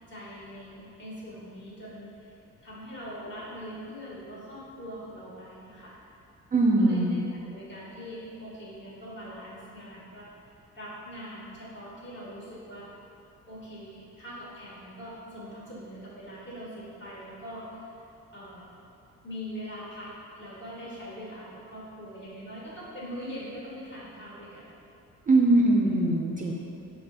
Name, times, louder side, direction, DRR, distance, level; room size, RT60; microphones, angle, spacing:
voice 1, 0.1-2.3 2.6-6.0 6.7-10.3 10.7-12.9 13.5-17.9 18.3-18.7 19.2-24.6, equal, 40° left, -7 dB, 1.4 m, -42 dB
voice 2, 6.5-7.2 25.3-26.5, right 2 dB, 30° right, -2 dB, 0.3 m, -21 dB
5.0 x 2.4 x 3.3 m, 2.7 s
cardioid pair, 90°, 30 cm